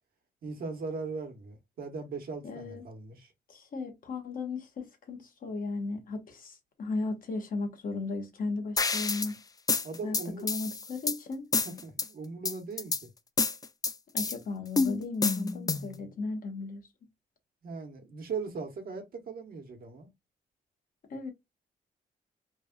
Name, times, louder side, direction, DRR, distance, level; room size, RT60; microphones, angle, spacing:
voice 1, 0.4-3.3 9.8-10.5 11.5-12.9 17.6-20.1, right 4 dB, 65° right, 1.1 m, -39 dB
voice 2, 2.4-2.8 3.5-9.4 10.0-10.2 10.4-11.5 14.1-16.8 21.1-21.3, left 3 dB, 60° left, 1.1 m, -36 dB
sound 1, 8.8-9.3 9.7-11.2 11.5-12.1 12.5-13.0 13.4-14.4 14.8-16.0, left 4 dB, 25° left, 0.4 m, -28 dB
3.2 x 2.4 x 2.2 m
cardioid pair, 80°, 16 cm